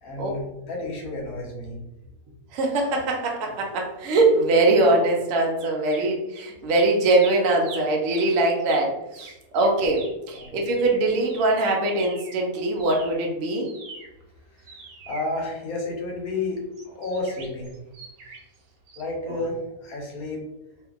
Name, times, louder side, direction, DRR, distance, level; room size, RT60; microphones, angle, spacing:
voice 1, 0.0-1.7 10.3-10.5 15.1-17.7 19.0-20.5, left 2 dB, 65° left, -1 dB, 1.1 m, -31 dB
voice 2, 2.5-13.7 19.3-19.4, right 2 dB, 65° right, 0 dB, 0.9 m, -22 dB
sound 1, 5.6-6.4 6.7-12.4 12.7-16.0 16.7-18.6 18.9-19.0, right 3 dB, 85° right, 1.3 m, -44 dB
2.8 x 2.5 x 2.3 m, 0.92 s
omnidirectional pair, 1.7 m